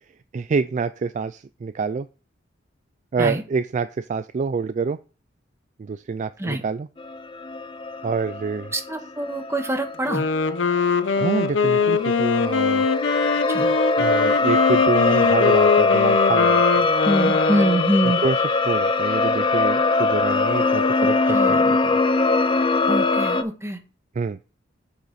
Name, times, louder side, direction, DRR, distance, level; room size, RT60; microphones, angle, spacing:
voice 1, 0.3-2.1 3.1-5.0 5.8-6.9 8.0-8.7 11.2-12.9 14.0-16.9 18.0-18.4 18.7-22.0 24.2-24.4, right 5 dB, 40° right, 13 dB, 0.3 m, -27 dB
sound 1, 7.0-23.4, left 3 dB, 25° left, 0.6 m, -22 dB
voice 2, 8.7-10.2 13.5-13.8 17.0-18.2 21.3-21.8 22.9-23.8, right 1 dB, 15° right, 5 dB, 1.4 m, -24 dB
Wind instrument woodwind instrument, 9.9-17.9, left 5 dB, 70° left, 0.7 m, -22 dB
8.0 x 6.8 x 4.1 m, 0.35 s
head